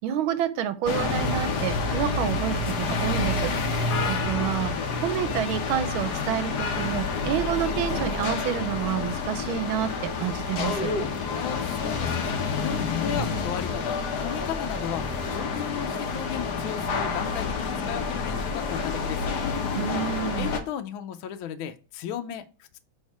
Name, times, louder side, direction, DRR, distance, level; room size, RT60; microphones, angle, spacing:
voice 1, 0.0-4.7 5.0-10.9 19.7-20.5, right 10 dB, 80° right, 12 dB, 1.4 m, -29 dB
sound 1, 0.9-20.6, left 4 dB, 60° left, 1.3 m, -28 dB
voice 2, 11.3-14.0 14.2-19.3 20.4-22.8, left 9 dB, 80° left, 9 dB, 1.4 m, -35 dB
6.5 x 3.5 x 4.7 m, 0.34 s
omnidirectional pair, 2.3 m